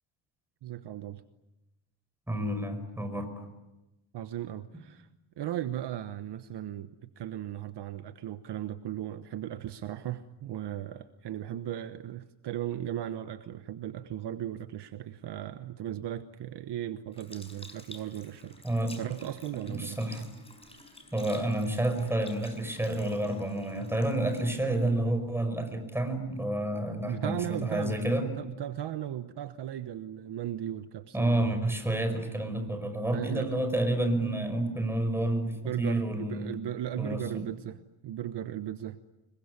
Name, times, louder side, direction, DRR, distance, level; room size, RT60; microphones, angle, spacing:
voice 1, 0.6-1.2 4.1-5.1 5.4-18.6 19.0-20.2 27.1-31.6 33.1-33.6 35.6-39.0, right 11 dB, 55° right, 10 dB, 1.2 m, -37 dB
voice 2, 2.3-3.5 18.6-18.9 19.7-20.2 21.1-28.3 31.1-36.5 37.0-37.5, right 1 dB, 5° right, 7 dB, 5.7 m, -29 dB
Sink (filling or washing) / Liquid, 17.1-25.7 26.3-26.4, left 2 dB, 10° left, 6.3 m, -51 dB
26.5 x 23.0 x 9.7 m, 0.99 s
cardioid pair, 135°, 48 cm